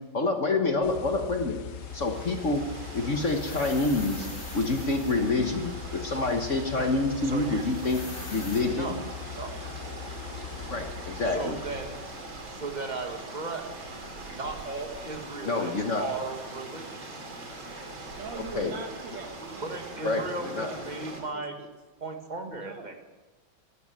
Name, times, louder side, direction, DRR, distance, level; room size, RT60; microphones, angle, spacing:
voice 1, 0.1-1.6 1.9-2.6 2.9-4.3 4.5-8.0 8.3-9.0 10.7-11.6 15.4-16.0 18.4-18.7 20.0-20.7, left 3 dB, 45° left, 4 dB, 1.4 m, -27 dB
sound 1, 0.8-12.5, left 8 dB, 65° left, 1.2 m, -41 dB
sound 2, 1.6-21.2, right 2 dB, 90° right, 3.5 m, -42 dB
sound 3, 3.1-5.3 7.6-8.6, left 3 dB, 80° left, 5.5 m, -44 dB
voice 2, 7.2-7.6 8.7-8.9 9.3-9.5 11.3-12.0 12.5-13.6 14.3-15.7 16.0-17.3 19.6-21.6 22.0-22.9, right 3 dB, 25° right, 4 dB, 1.6 m, -36 dB
voice 3, 18.2-21.1 21.3-21.7 22.5-23.1, right 5 dB, 70° right, 5 dB, 2.3 m, -43 dB
15.5 x 12.5 x 7.4 m, 1.2 s
omnidirectional pair, 2.1 m